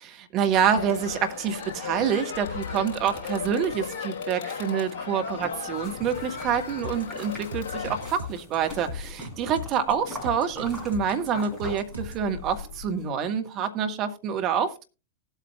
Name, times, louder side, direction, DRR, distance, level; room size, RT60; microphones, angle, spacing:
voice 1, 0.0-14.8, right 7 dB, 35° right, 1.3 m, -27 dB
Crowd, 0.5-8.1, left 6 dB, 50° left, 3.9 m, -36 dB
sound 1, 5.7-13.1, left 2 dB, ahead, 5.4 m, -42 dB
sound 2, 6.8-12.3, left 2 dB, 80° right, 1.3 m, -38 dB
18.5 x 8.1 x 2.2 m
figure-of-eight pair, 100°, 0 cm